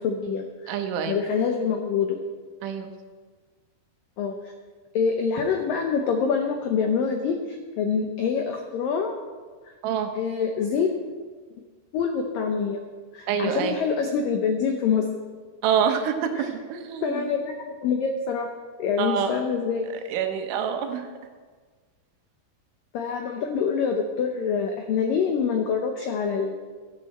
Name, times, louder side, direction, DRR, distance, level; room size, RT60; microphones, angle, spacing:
voice 1, 0.0-0.7 1.1-2.2 4.2-4.4 4.9-9.1 10.2-10.9 11.9-12.8 13.1-15.1 16.4-16.5 17.0-18.5 18.8-19.9 22.9-26.5, left 6 dB, 85° left, 4 dB, 1.9 m, -25 dB
voice 2, 0.7-1.2 2.6-2.9 9.8-10.1 13.3-13.8 15.6-17.3 19.0-19.4 20.1-21.1, right 8 dB, 85° right, 6 dB, 3.6 m, -26 dB
16.5 x 12.5 x 4.3 m, 1.5 s
omnidirectional pair, 5.3 m